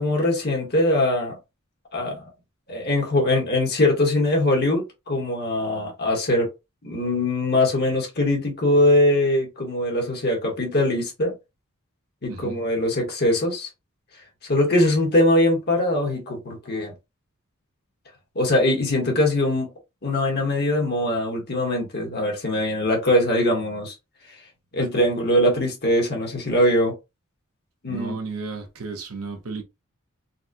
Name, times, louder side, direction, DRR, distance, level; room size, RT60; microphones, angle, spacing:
voice 1, 0.0-1.4 1.9-2.2 2.7-6.5 6.8-11.3 12.2-13.7 14.5-16.9 18.3-19.7 20.0-23.9 24.7-26.9 27.8-28.1, left 1 dB, 50° left, 1.2 m, -22 dB
voice 2, 12.3-12.6 27.9-29.6, right 4 dB, 85° right, 0.9 m, -33 dB
4.0 x 2.1 x 2.5 m
head